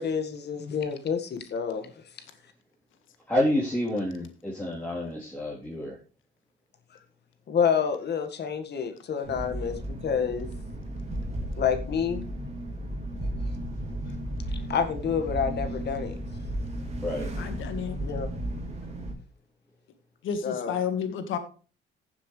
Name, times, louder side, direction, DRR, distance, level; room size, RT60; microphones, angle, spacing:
voice 1, 0.0-1.9 7.5-10.5 11.6-12.3 14.7-16.2 18.0-18.3 20.4-20.8, left 7 dB, 55° left, 1.8 m, -28 dB
voice 2, 3.3-6.0 17.0-17.3, left 1 dB, 5° left, 3.5 m, -28 dB
sound 1, 9.2-19.1, right 1 dB, 35° right, 3.3 m, -34 dB
voice 3, 17.4-18.0 20.2-21.4, left 7 dB, 80° left, 1.7 m, -31 dB
15.0 x 7.5 x 3.3 m
cardioid pair, 90°, 20 cm